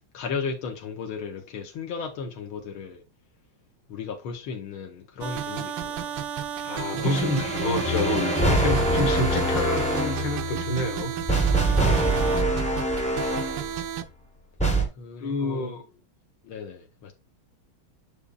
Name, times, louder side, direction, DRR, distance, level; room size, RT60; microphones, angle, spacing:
voice 1, 0.1-3.0 3.9-6.2 6.9-7.3 11.8-12.4 15.0-15.8 16.4-17.1, left 5 dB, 85° left, 1.9 m, -36 dB
sound 1, 5.2-14.0, right 10 dB, 70° right, 1.2 m, -32 dB
voice 2, 6.6-11.1 15.2-15.8, left 1 dB, 65° left, 2.0 m, -28 dB
sound 2, 7.0-13.7 14.6-14.9, right 1 dB, 10° left, 0.4 m, -24 dB
6.9 x 6.9 x 2.3 m
omnidirectional pair, 2.2 m